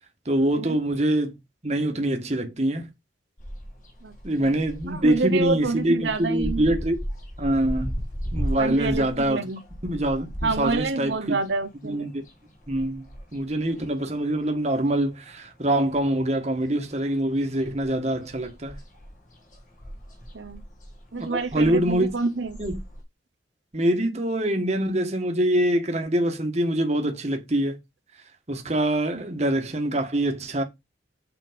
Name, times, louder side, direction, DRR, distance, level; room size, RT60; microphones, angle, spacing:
voice 1, 0.2-1.4 1.6-2.9 4.2-7.0 7.4-8.0 8.3-9.4 9.8-11.3 11.8-12.2 12.7-18.8 21.2-22.1 22.6-22.8 23.7-27.8 28.5-30.6, right 1 dB, 40° right, 1.5 m, -24 dB
sound 1, 3.4-15.0 15.3-16.6 16.8-23.0, equal, 45° left, 2.0 m, -36 dB
voice 2, 4.0-4.5 4.9-6.6 8.6-9.6 10.4-12.1 20.3-20.6 21.1-22.6 29.1-29.2, right 4 dB, 85° right, 0.9 m, -28 dB
7.1 x 5.1 x 5.1 m
head